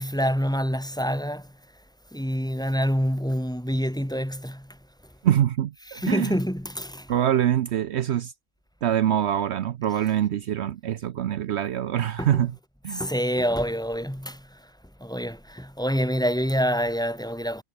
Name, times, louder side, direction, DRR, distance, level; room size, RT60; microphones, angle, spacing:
voice 1, 0.0-1.5 2.1-4.7 5.9-7.1 12.2-12.5 12.9-14.5 15.0-17.6, equal, 5° left, 2.7 m, -26 dB
voice 2, 5.2-6.3 7.1-8.3 8.8-12.5 12.8-13.1, right 10 dB, 70° right, 0.9 m, -24 dB
omnidirectional pair, 1.3 m